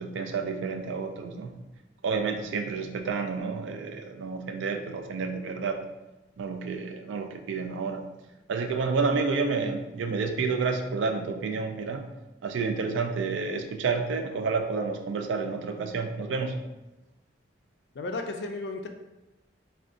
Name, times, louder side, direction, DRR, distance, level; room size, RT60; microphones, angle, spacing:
voice 1, 0.0-1.5 2.0-5.8 6.4-8.0 8.5-12.1 12.4-16.6, right 4 dB, 85° right, 5 dB, 0.3 m, -30 dB
voice 2, 17.9-18.9, left 2 dB, 60° left, 5 dB, 0.3 m, -33 dB
2.5 x 2.2 x 3.6 m, 1.0 s
head